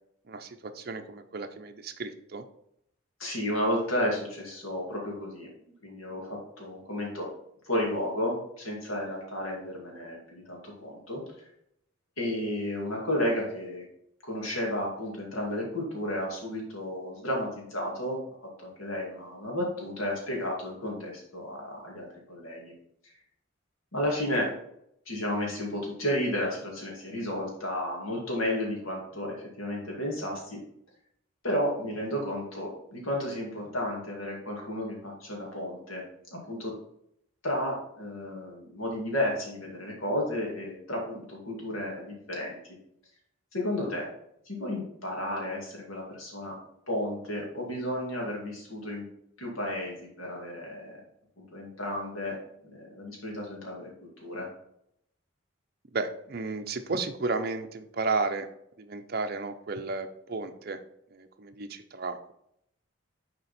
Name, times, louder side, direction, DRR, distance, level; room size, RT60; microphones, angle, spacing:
voice 1, 0.3-2.4 55.9-58.5 58.8-60.8 61.1-62.3, right 3 dB, 50° right, 7 dB, 0.6 m, -33 dB
voice 2, 3.2-5.5 5.8-7.3 7.6-11.2 12.2-13.9 14.2-18.2 18.6-22.7 23.9-24.5 25.1-30.6 31.4-36.0 36.3-36.7 37.4-42.6 43.5-44.1 44.5-46.5 46.9-49.0 49.4-51.0 51.4-54.5, left 1 dB, 90° left, -1 dB, 2.3 m, -32 dB
6.7 x 4.4 x 4.2 m, 0.75 s
head